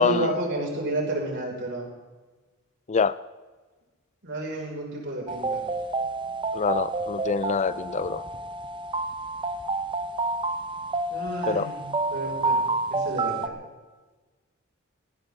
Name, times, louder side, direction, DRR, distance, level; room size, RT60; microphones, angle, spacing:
voice 1, 0.0-1.9 4.2-5.6 11.1-11.9 12.1-13.6, right 1 dB, 60° right, 5.7 m, -31 dB
sound 1, 5.3-13.5, right 3 dB, 25° right, 1.0 m, -29 dB
voice 2, 6.5-8.2 11.5-11.7, left 5 dB, 35° left, 0.5 m, -25 dB
18.5 x 18.0 x 3.8 m
head